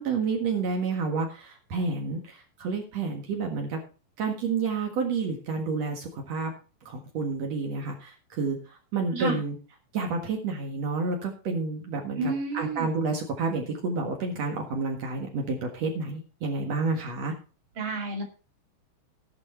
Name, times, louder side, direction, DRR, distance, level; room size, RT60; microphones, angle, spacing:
voice 1, 0.0-3.8 4.2-6.5 6.8-9.6 9.9-17.3, right 4 dB, 70° right, 2 dB, 1.5 m, -30 dB
voice 2, 9.1-9.4 12.2-12.9 17.8-18.2, right 3 dB, 35° right, 2 dB, 2.4 m, -30 dB
18.0 x 6.4 x 4.4 m, 0.35 s
omnidirectional pair, 5.7 m